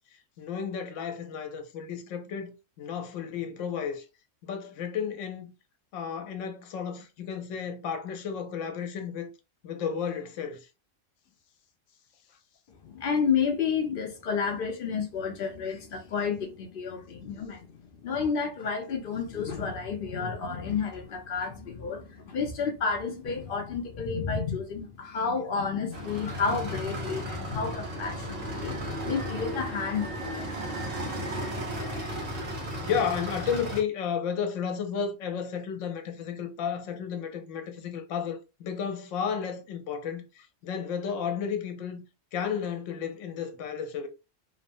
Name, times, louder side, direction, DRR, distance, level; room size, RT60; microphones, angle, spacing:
voice 1, 0.4-4.0 4.4-5.5 5.9-9.3 9.6-10.7 17.3-17.5 32.8-42.0 42.3-44.1, left 7 dB, 75° left, 1.0 m, -33 dB
voice 2, 12.8-17.7 18.0-28.8 29.0-30.5, left 5 dB, 60° left, 0.6 m, -31 dB
sound 1, 25.9-33.8, equal, 70° right, 1.2 m, -35 dB
2.9 x 2.0 x 2.5 m
omnidirectional pair, 1.3 m